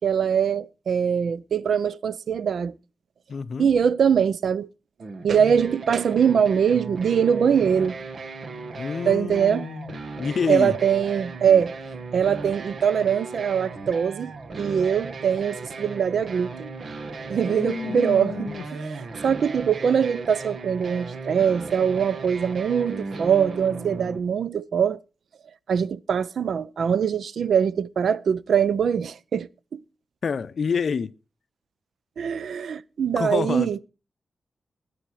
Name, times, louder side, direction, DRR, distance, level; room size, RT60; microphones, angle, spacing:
voice 1, 0.0-2.7 3.6-4.7 5.2-8.0 9.1-9.7 10.5-11.7 12.1-16.7 17.3-18.9 19.2-25.0 25.7-29.8 32.2-33.8, right 7 dB, 75° right, 0.5 m, -22 dB
voice 2, 3.3-3.7 8.8-10.7 17.4-18.6 30.2-31.1 33.2-33.8, left 5 dB, 55° left, 0.7 m, -28 dB
sound 1, 5.0-24.2, right 3 dB, 55° right, 1.6 m, -36 dB
19.0 x 7.9 x 4.9 m
wide cardioid pair, 150°, 0 cm